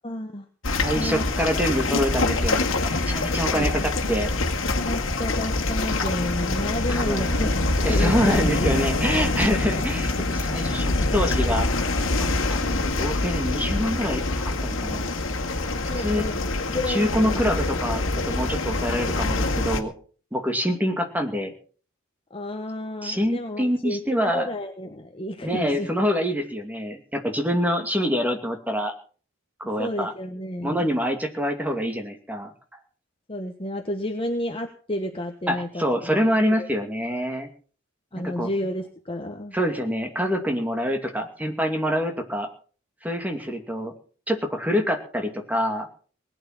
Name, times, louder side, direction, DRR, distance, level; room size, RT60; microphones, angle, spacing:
voice 1, 0.0-0.4 0.9-1.2 3.5-3.7 4.8-9.0 15.9-16.4 16.7-17.4 22.3-25.9 29.8-30.9 33.3-36.2 36.6-36.7 38.1-39.5, left 1 dB, 25° left, 4 dB, 1.3 m, -31 dB
sound 1, 0.6-19.8, left 2 dB, 65° left, 2.1 m, -25 dB
voice 2, 0.7-4.3 6.9-7.4 7.8-11.7 12.2-15.1 16.0-16.2 16.9-19.9 20.3-21.5 23.0-24.5 25.4-28.9 29.6-30.1 30.6-32.5 35.5-37.5 38.1-38.5 39.5-42.5 43.0-43.9 44.3-45.9, equal, 10° right, 4 dB, 2.5 m, -26 dB
20.0 x 9.3 x 6.1 m, 0.42 s
head